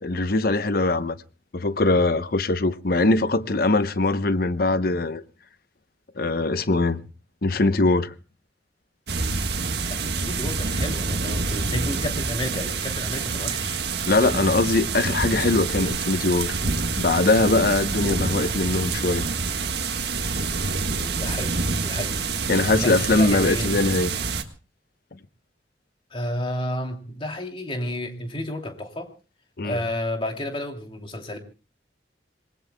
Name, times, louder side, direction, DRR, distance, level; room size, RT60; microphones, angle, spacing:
voice 1, 0.0-1.1 1.5-5.2 6.2-7.0 7.4-8.1 14.1-16.6 17.0-19.2 22.5-24.1 29.6-29.8, left 2 dB, 55° left, 0.8 m, -21 dB
sound 1, 9.1-24.4, right 4 dB, 65° right, 1.6 m, -27 dB
voice 2, 9.9-13.8 21.0-22.3 22.7-23.7 26.1-29.1 29.6-31.4, left 1 dB, 30° left, 2.8 m, -31 dB
26.5 x 20.5 x 2.2 m
head